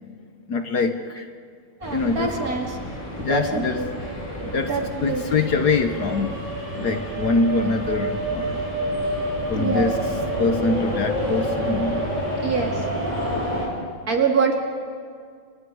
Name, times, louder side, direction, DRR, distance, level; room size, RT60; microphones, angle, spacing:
voice 1, 0.5-1.3 1.9-2.3 3.2-3.8 4.4-4.7 5.0-6.4 6.8-8.9 9.5-10.0 10.4-12.1, left 4 dB, 55° left, 7 dB, 1.5 m, -24 dB
sound 1, 1.8-13.7, right 1 dB, 15° left, 4.6 m, -28 dB
voice 2, 1.8-2.8 3.3-3.9 4.7-5.4 9.5-10.0 12.4-12.7 14.1-14.5, right 5 dB, 45° right, 2 dB, 2.9 m, -25 dB
30.0 x 27.0 x 4.9 m, 2.1 s
omnidirectional pair, 2.2 m